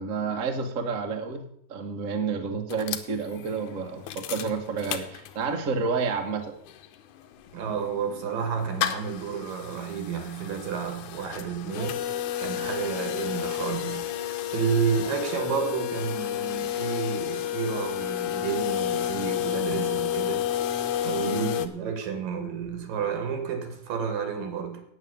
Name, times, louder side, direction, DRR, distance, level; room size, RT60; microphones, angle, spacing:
voice 1, 0.0-1.4 1.7-6.5 21.3-21.5, right 5 dB, 65° right, 4 dB, 0.7 m, -30 dB
sound 1, 2.7-5.7 6.1-6.2 6.3-21.7, left 11 dB, 75° left, 2.1 m, -31 dB
voice 2, 7.5-12.0 12.4-20.5 21.0-24.8, right 6 dB, 85° right, 7 dB, 3.5 m, -31 dB
9.0 x 9.0 x 7.1 m, 0.68 s
omnidirectional pair, 3.8 m